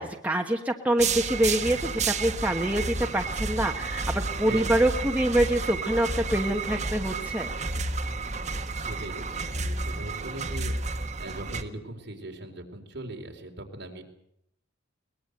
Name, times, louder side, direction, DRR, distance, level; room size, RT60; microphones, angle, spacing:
voice 1, 0.2-7.7, right 1 dB, 10° right, 2 dB, 1.2 m, -26 dB
sound 1, 1.0-11.6, right 3 dB, 35° right, 1.5 m, -31 dB
voice 2, 4.3-4.8 8.8-14.2, right 1 dB, 55° right, 2 dB, 3.9 m, -40 dB
22.0 x 20.5 x 8.0 m, 0.77 s
head